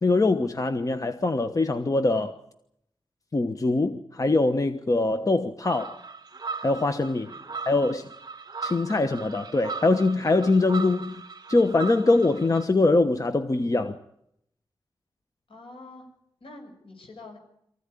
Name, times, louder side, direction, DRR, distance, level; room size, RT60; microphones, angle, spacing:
voice 1, 0.0-2.4 3.3-6.0 6.6-7.3 7.6-8.1 8.6-11.2 11.5-14.0, left 2 dB, 40° left, 1.1 m, -23 dB
sound 1, 5.6-12.7, right 4 dB, 45° right, 1.5 m, -38 dB
voice 2, 15.5-16.1 16.4-17.4, left 2 dB, 75° left, 6.8 m, -46 dB
23.5 x 15.5 x 9.9 m
wide cardioid pair, 90°, 9 cm